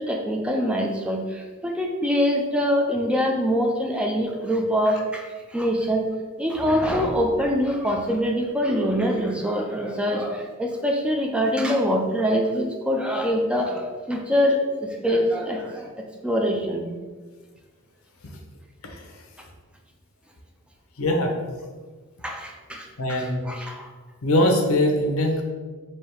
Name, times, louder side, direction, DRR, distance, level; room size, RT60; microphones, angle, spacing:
voice 1, 0.0-6.0 6.4-15.9 16.2-16.9 22.2-23.9, equal, 5° right, 1 dB, 0.3 m, -24 dB
voice 2, 18.8-19.1 21.0-21.3 23.0-23.5 24.2-25.4, left 1 dB, 75° left, 3 dB, 0.7 m, -22 dB
3.4 x 2.7 x 4.5 m, 1.4 s
head